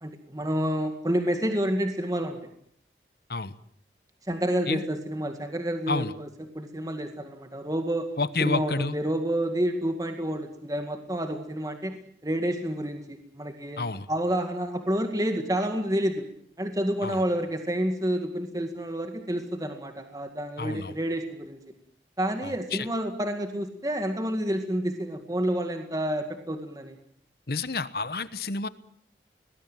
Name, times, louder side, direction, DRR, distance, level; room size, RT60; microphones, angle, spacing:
voice 1, 0.0-2.4 4.3-6.3 6.6-8.1 8.4-12.0 12.2-13.8 14.1-16.3 16.6-21.6 22.2-27.0, right 1 dB, 20° right, 6 dB, 2.0 m, -29 dB
voice 2, 8.2-9.0 13.8-14.1 17.0-17.2 20.6-20.9 22.4-22.9 27.5-28.7, left 3 dB, 60° left, 15 dB, 1.1 m, -29 dB
22.5 x 20.0 x 9.1 m, 0.66 s
head